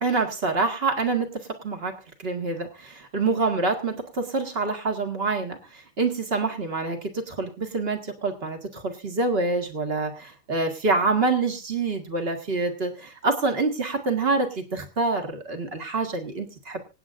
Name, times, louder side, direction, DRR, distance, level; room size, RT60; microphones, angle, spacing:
voice 1, 0.0-1.3 1.6-1.9 2.2-16.8, right 3 dB, 40° right, 4 dB, 0.8 m, -26 dB
26.5 x 8.9 x 2.6 m, 0.29 s
omnidirectional pair, 3.8 m